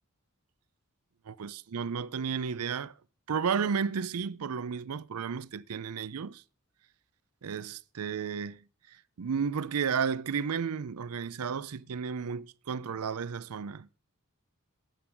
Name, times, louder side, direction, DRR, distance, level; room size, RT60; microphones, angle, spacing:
voice 1, 1.3-2.9 3.3-6.4 7.4-8.6 8.9-13.9, right 6 dB, 85° right, 0.5 m, -33 dB
9.0 x 8.7 x 5.9 m
head